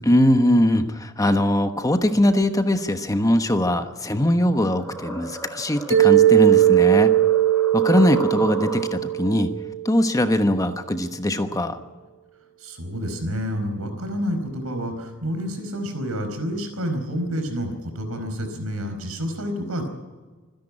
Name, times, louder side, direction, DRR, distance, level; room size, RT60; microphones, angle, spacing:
voice 1, 0.0-7.1 7.7-9.5 9.8-11.8, left 1 dB, 15° left, 8 dB, 1.1 m, -21 dB
sound 1, 4.1-9.2, equal, 5° right, 5.7 m, -36 dB
Mallet percussion, 5.9-10.0, right 13 dB, 65° right, 4.8 m, -18 dB
voice 2, 12.6-19.9, equal, 85° right, 7 dB, 4.7 m, -29 dB
26.0 x 10.5 x 9.9 m, 1.3 s
head